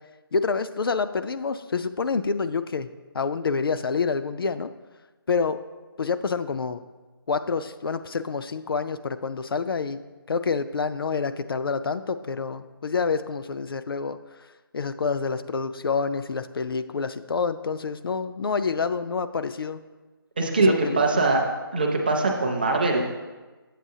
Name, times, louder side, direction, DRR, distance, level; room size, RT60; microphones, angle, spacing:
voice 1, 0.3-2.9 3.1-4.7 5.3-5.6 6.0-6.8 7.3-10.0 10.3-14.2 14.7-19.8 20.6-21.3, left 5 dB, 70° left, 11 dB, 0.4 m, -27 dB
voice 2, 20.4-21.4 21.7-23.0, right 3 dB, 25° right, 1 dB, 0.5 m, -22 dB
7.6 x 6.8 x 2.7 m, 1.2 s
hypercardioid pair, 175°, 13 cm